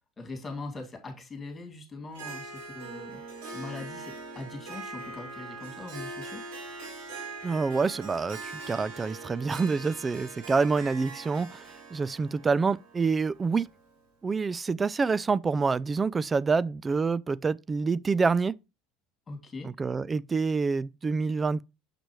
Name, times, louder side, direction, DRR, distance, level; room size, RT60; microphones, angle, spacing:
voice 1, 0.2-3.2 3.5-6.4 19.3-19.7, left 3 dB, 20° left, 2.6 m, -41 dB
Harp, 2.1-13.9, right 3 dB, 80° right, 3.4 m, -42 dB
voice 2, 7.4-11.6 11.9-13.7 14.2-18.6 19.6-21.6, right 4 dB, 20° right, 0.3 m, -27 dB
6.7 x 6.0 x 3.1 m
supercardioid pair, 110°, 0 cm